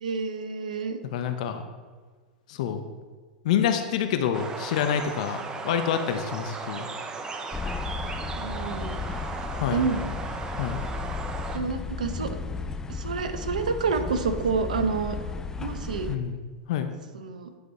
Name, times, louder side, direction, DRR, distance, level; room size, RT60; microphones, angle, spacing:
voice 1, 0.0-1.0 8.4-9.0 9.7-10.1 11.5-12.4 12.9-15.2 15.6-16.1 17.1-17.5, right 4 dB, 85° right, 8 dB, 0.9 m, -28 dB
voice 2, 1.1-1.6 2.5-2.8 3.4-6.9 9.6-9.9 10.6-10.8 16.1-16.4 16.7-16.9, left 8 dB, 65° left, 7 dB, 0.9 m, -27 dB
sound 1, 4.3-11.6, right 4 dB, 20° right, 0.8 m, -36 dB
sound 2, 7.5-16.2, left 4 dB, 15° left, 0.5 m, -34 dB
10.0 x 5.1 x 4.1 m, 1.5 s
hypercardioid pair, 105°, 4 cm